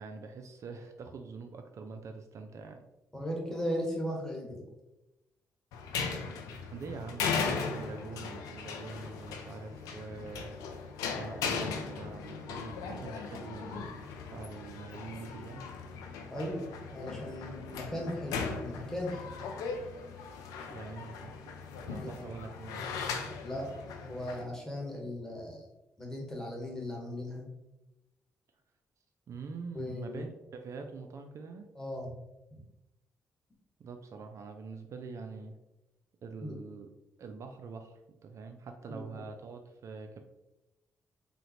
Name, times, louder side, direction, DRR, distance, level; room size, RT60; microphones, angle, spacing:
voice 1, 0.0-2.9 6.7-10.5 11.1-15.6 20.7-21.5 21.9-23.0 29.3-31.7 33.8-35.6 36.2-36.9 37.2-40.2, right 4 dB, 55° right, 5 dB, 0.3 m, -44 dB
voice 2, 3.1-4.6 16.3-19.3 22.0-22.3 23.4-25.7 26.0-27.5 29.7-30.2 31.7-32.2 36.4-36.5 38.9-39.2, equal, 10° left, -2 dB, 1.3 m, -37 dB
sound 1, 5.7-24.4, left 5 dB, 80° left, 0.4 m, -38 dB
3.7 x 2.1 x 2.9 m, 0.97 s
hypercardioid pair, 45°, 6 cm